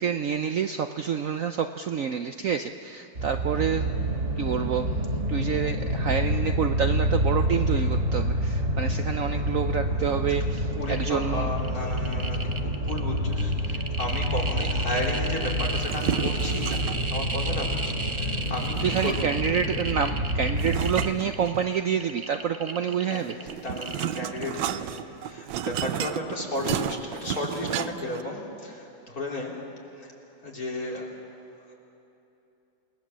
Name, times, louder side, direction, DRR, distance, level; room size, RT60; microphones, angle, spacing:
voice 1, 0.0-3.9 4.4-5.0 5.3-11.5 18.4-23.4, right 7 dB, 60° right, 7 dB, 0.9 m, -28 dB
sound 1, 3.2-21.1, equal, 40° right, 2.7 m, -28 dB
voice 2, 10.7-16.8 17.1-19.2 22.6-23.3 23.5-29.6 29.9-30.1 30.4-31.1, left 1 dB, 50° left, -2 dB, 4.2 m, -34 dB
sound 2, 10.8-11.2 11.6-24.6 24.9-25.0, right 3 dB, 25° right, 0.8 m, -35 dB
sound 3, 15.8-17.1 18.6-19.6 20.6-22.0 23.1-28.2, right 10 dB, 85° right, 1.4 m, -32 dB
28.5 x 20.0 x 7.5 m, 3.0 s
omnidirectional pair, 2.0 m